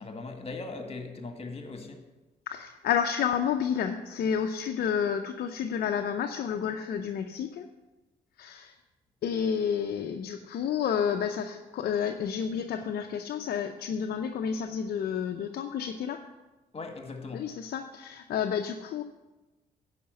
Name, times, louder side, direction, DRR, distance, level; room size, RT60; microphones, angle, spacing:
voice 1, 0.0-2.0 16.7-17.5, left 3 dB, 35° left, 1.7 m, -39 dB
voice 2, 2.5-7.7 8.4-8.7 9.2-16.2 17.3-19.0, left 7 dB, 65° left, 0.7 m, -30 dB
11.0 x 5.1 x 7.7 m
supercardioid pair, 55°, 17 cm